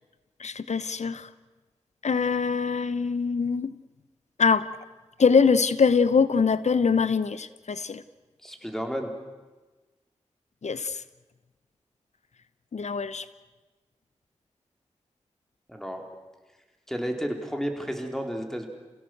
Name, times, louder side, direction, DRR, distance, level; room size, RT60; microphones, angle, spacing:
voice 1, 0.4-1.3 2.0-3.7 4.4-4.7 5.2-8.0 10.6-11.0 12.7-13.2, left 5 dB, 70° left, 15 dB, 0.9 m, -23 dB
voice 2, 8.4-9.1 15.7-16.0 16.9-18.7, equal, 5° left, 4 dB, 4.1 m, -32 dB
28.0 x 17.0 x 7.9 m, 1.2 s
cardioid pair, 45°, 12 cm